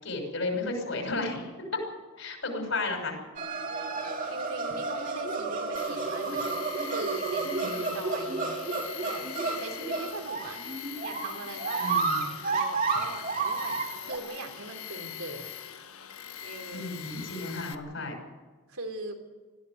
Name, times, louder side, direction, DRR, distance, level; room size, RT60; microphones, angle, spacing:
voice 1, 0.0-1.8 2.2-3.2 7.6-8.0 11.8-12.3 16.7-18.1, left 3 dB, 60° left, 4 dB, 6.1 m, -33 dB
sound 1, 3.4-14.2, right 4 dB, 40° right, 2.7 m, -31 dB
voice 2, 4.3-6.6 6.8-8.6 9.0-9.2 9.6-10.6 11.0-15.5 16.4-16.9 18.7-19.2, right 2 dB, 80° right, 3 dB, 3.6 m, -40 dB
Tools, 5.8-17.8, left 9 dB, 85° left, 1.4 m, -42 dB
20.5 x 15.0 x 9.5 m, 1.4 s
head